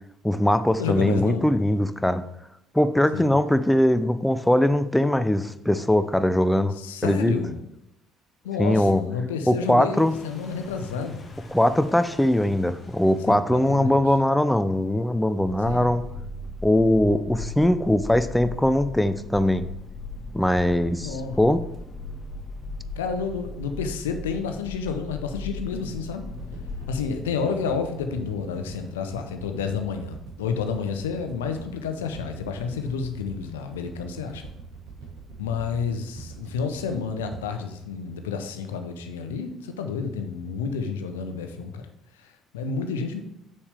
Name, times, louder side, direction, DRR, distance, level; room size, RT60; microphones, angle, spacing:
voice 1, 0.2-2.2 2.7-6.8 7.0-7.3 8.6-9.0 9.5-10.1 11.5-16.0 16.6-19.7 20.3-21.6, left 1 dB, 5° left, 12 dB, 0.5 m, -21 dB
voice 2, 0.8-1.4 3.1-3.4 6.8-7.6 8.4-11.2 13.3-14.0 15.7-15.9 21.0-21.4 23.0-26.2 26.9-34.4 35.4-41.9 42.2-43.2, left 5 dB, 80° left, 6 dB, 0.7 m, -30 dB
sound 1, 9.9-13.4 15.4-27.0, left 2 dB, 35° left, 1.7 m, -38 dB
sound 2, 26.4-38.7 39.1-39.2, right 5 dB, 75° right, 2.7 m, -42 dB
7.0 x 6.6 x 3.4 m, 0.82 s
hypercardioid pair, 55°, 0 cm